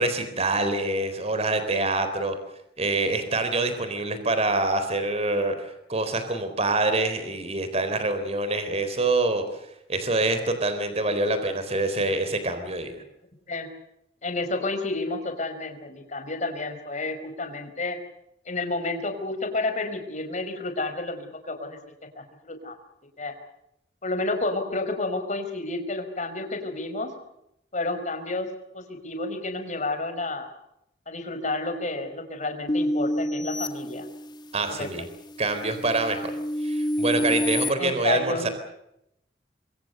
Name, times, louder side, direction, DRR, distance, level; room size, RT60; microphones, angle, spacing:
voice 1, 0.0-2.4 2.8-9.4 9.9-12.9 34.5-35.0 35.4-36.3 36.6-38.5, right 2 dB, 35° right, 9 dB, 3.9 m, -25 dB
voice 2, 14.2-18.0 18.5-21.8 22.1-22.7 23.2-23.3 24.0-27.1 27.7-28.5 28.7-30.5 31.1-34.1 34.8-34.9 37.8-38.5, left 2 dB, 40° left, 6 dB, 5.0 m, -30 dB
sound 1, 32.7-34.6 35.2-37.7, left 1 dB, 25° left, 1.3 m, -28 dB
26.0 x 24.0 x 6.8 m, 0.80 s
head